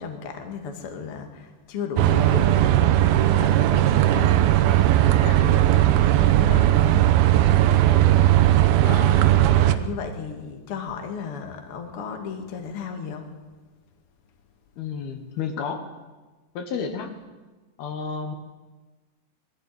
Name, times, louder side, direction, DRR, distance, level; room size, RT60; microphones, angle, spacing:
voice 1, 0.0-7.0 8.8-13.3, left 6 dB, 45° left, 4 dB, 2.1 m, -35 dB
Thames Shore Nr Tower, 2.0-9.8, right 13 dB, 75° right, 2.4 m, -18 dB
voice 2, 14.8-15.9 16.5-17.1 17.8-18.4, left 6 dB, 65° left, 6 dB, 3.2 m, -31 dB
21.5 x 14.0 x 9.1 m, 1.2 s
omnidirectional pair, 5.0 m